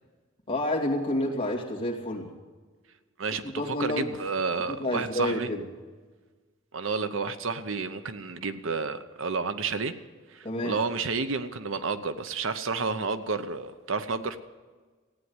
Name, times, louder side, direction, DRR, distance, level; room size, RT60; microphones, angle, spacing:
voice 1, 0.5-2.3 3.4-4.1 4.7-5.6 10.4-10.8, left 1 dB, 25° left, -3 dB, 2.7 m, -29 dB
voice 2, 3.2-5.5 6.7-9.9 10.3-14.4, right 4 dB, 70° right, 11 dB, 0.8 m, -31 dB
16.0 x 9.3 x 9.6 m, 1.4 s
head